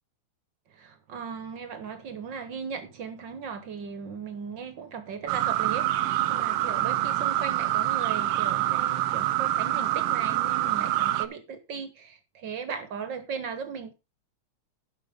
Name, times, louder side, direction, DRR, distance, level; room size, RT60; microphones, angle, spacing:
voice 1, 0.7-13.9, right 6 dB, 55° right, 1.4 m, -37 dB
sound 1, 5.3-11.3, right 14 dB, 85° right, 1.3 m, -26 dB
11.5 x 5.6 x 5.1 m
omnidirectional pair, 3.4 m